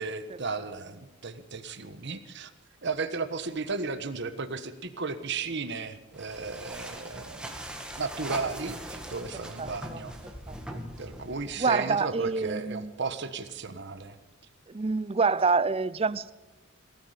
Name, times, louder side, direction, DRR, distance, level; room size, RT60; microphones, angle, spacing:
voice 1, 0.0-2.5 2.8-7.6 7.9-10.2 11.0-14.2, right 4 dB, 55° right, 1.3 m, -35 dB
sound 1, 6.1-11.7, right 1 dB, 5° right, 1.9 m, -41 dB
voice 2, 9.3-10.0 10.5-10.6 11.6-12.9 14.7-16.3, right 4 dB, 30° right, 0.5 m, -27 dB
19.0 x 13.5 x 5.1 m
head